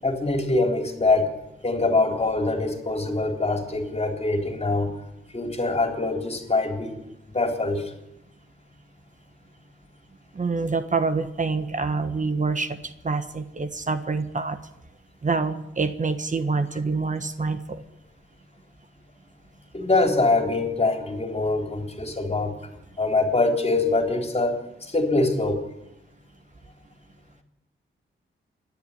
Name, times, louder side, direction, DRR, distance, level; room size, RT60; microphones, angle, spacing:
voice 1, 0.0-1.3 1.6-4.9 5.3-7.0 7.3-7.9 19.7-22.5 23.0-25.6, left 2 dB, 30° left, 5 dB, 3.6 m, -24 dB
voice 2, 10.3-12.8 13.0-14.6 15.2-17.8, right 4 dB, 40° right, 10 dB, 1.4 m, -26 dB
27.0 x 11.0 x 9.8 m, 0.91 s
cardioid pair, 85°, 21 cm